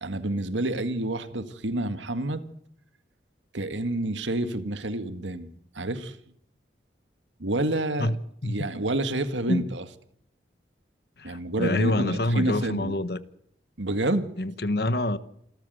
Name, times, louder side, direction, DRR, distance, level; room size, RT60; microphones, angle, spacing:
voice 1, 0.0-2.4 3.5-6.2 7.4-8.1 8.4-9.8 11.2-13.0 13.8-14.3, right 1 dB, 90° right, 1.9 m, -28 dB
voice 2, 11.2-13.2 14.4-15.2, left 1 dB, 60° left, 1.2 m, -26 dB
27.5 x 13.5 x 8.0 m
head